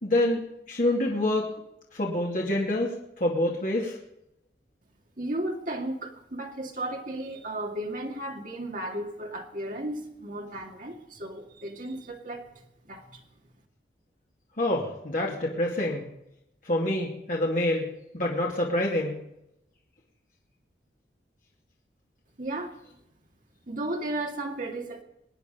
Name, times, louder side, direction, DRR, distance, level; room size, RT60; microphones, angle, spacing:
voice 1, 0.0-0.4 0.7-1.5 1.9-2.9 3.2-4.0 14.6-16.1 16.6-17.9 18.1-19.2, left 1 dB, 45° left, -2 dB, 2.7 m, -26 dB
voice 2, 5.2-13.2 22.4-23.0 23.7-25.0, right 1 dB, 45° right, 2 dB, 2.2 m, -35 dB
23.5 x 9.5 x 5.3 m, 0.83 s
head